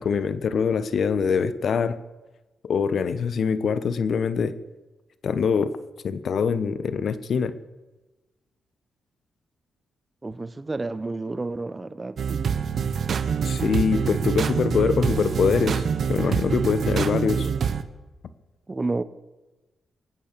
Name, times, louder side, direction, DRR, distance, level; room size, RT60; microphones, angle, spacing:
voice 1, 0.0-2.0 2.6-4.5 5.2-5.7 6.0-7.5 13.4-15.8 16.1-17.5, left 6 dB, 65° left, 14 dB, 1.1 m, -24 dB
voice 2, 10.2-12.2 18.7-19.0, right 3 dB, 25° right, 14 dB, 0.9 m, -30 dB
sound 1, 12.2-17.8, right 6 dB, 60° right, 1.0 m, -25 dB
23.0 x 8.7 x 6.9 m, 1.1 s
cardioid pair, 80°, 0 cm